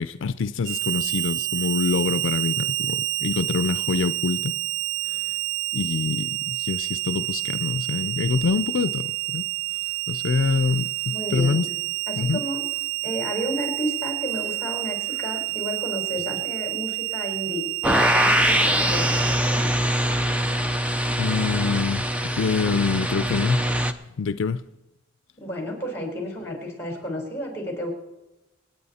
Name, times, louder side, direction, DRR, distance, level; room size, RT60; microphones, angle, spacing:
voice 1, 0.0-4.5 5.1-5.3 5.7-9.5 10.1-11.7 12.2-12.4 21.2-22.1 22.4-23.7 24.2-24.6, left 4 dB, 70° left, 12 dB, 0.5 m, -25 dB
Harmonica, 0.6-19.4, right 18 dB, 65° right, 0.4 m, -29 dB
voice 2, 11.1-11.6 12.1-12.6 13.0-19.7 25.4-27.9, equal, 10° left, 1 dB, 4.2 m, -32 dB
sound 1, 17.8-23.9, equal, 5° right, 0.7 m, -23 dB
26.5 x 9.3 x 4.2 m, 0.98 s
head